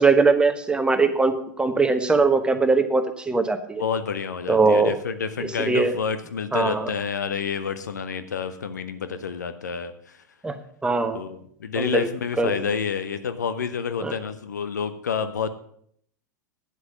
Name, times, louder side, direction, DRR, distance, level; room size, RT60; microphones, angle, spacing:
voice 1, 0.0-3.8 4.5-5.0 5.4-5.9 6.5-6.9 10.4-10.6 10.8-11.2 11.8-12.1 12.4-12.5 14.0-14.1, right 4 dB, 10° right, 8 dB, 1.2 m, -21 dB
voice 2, 3.8-10.2 11.1-15.5, left 6 dB, 70° left, 11 dB, 0.9 m, -29 dB
10.0 x 7.9 x 6.8 m, 0.64 s
figure-of-eight pair, 85°, 10 cm